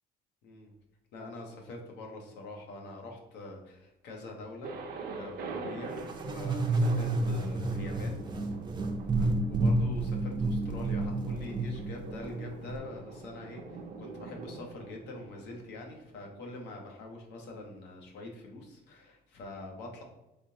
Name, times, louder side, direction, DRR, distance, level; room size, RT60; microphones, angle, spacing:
voice 1, 0.4-0.7 1.1-4.7 5.1-6.0 6.2-8.5 9.1-20.0, left 2 dB, 85° left, 1 dB, 0.9 m, -45 dB
Thunder, 4.6-16.4, right 4 dB, 65° right, 0.6 m, -45 dB
sound 1, 6.0-12.8, right 2 dB, 25° right, 0.5 m, -30 dB
3.6 x 3.5 x 2.8 m, 0.95 s
cardioid pair, 110°, 17 cm